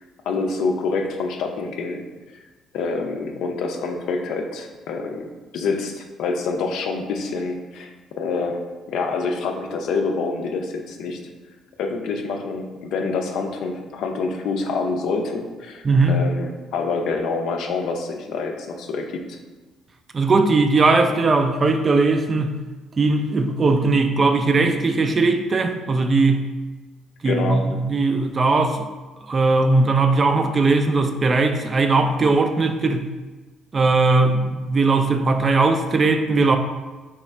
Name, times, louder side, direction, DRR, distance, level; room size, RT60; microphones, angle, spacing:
voice 1, 0.3-2.0 2.7-7.9 8.2-11.2 11.8-19.4 27.3-27.7, left 4 dB, 75° left, 3 dB, 0.4 m, -26 dB
voice 2, 15.8-16.2 20.1-22.6 23.0-26.5 27.2-28.9 29.3-33.1 33.7-36.6, right 3 dB, 35° right, 6 dB, 0.3 m, -19 dB
3.0 x 2.4 x 4.3 m, 1.3 s
supercardioid pair, 75°, 0 cm